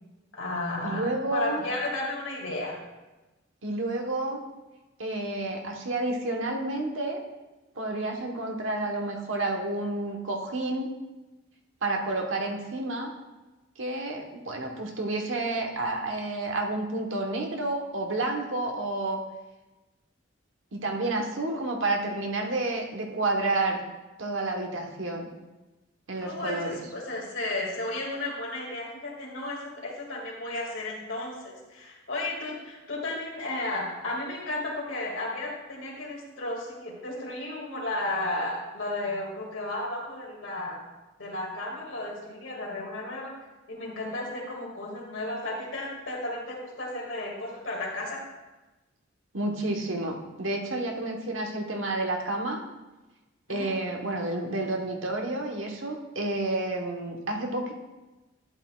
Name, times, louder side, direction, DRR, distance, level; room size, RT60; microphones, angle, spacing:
voice 1, 0.3-2.8 26.2-40.8 41.2-43.3 43.7-48.2 53.5-53.7, left 2 dB, 75° left, -2 dB, 2.3 m, -33 dB
voice 2, 0.8-1.6 3.6-4.4 5.0-7.2 7.8-10.9 11.8-13.1 13.8-19.2 20.7-23.8 24.2-25.3 26.1-26.8 49.3-52.6 53.5-57.7, right 2 dB, 80° right, 2 dB, 1.2 m, -30 dB
11.5 x 8.4 x 2.4 m, 1.1 s
head